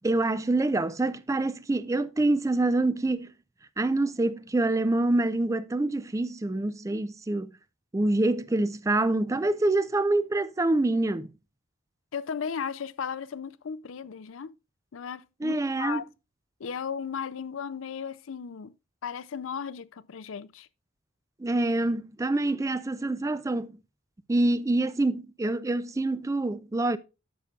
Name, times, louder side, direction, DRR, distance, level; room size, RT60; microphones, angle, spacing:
voice 1, 0.0-3.3 3.8-7.5 7.9-11.3 15.4-16.0 21.4-23.8 24.3-27.0, right 2 dB, 15° right, 0.3 m, -26 dB
voice 2, 12.1-14.6 14.9-16.1 16.6-18.7 19.0-20.7, left 6 dB, 75° left, 0.5 m, -35 dB
11.0 x 7.1 x 2.4 m
head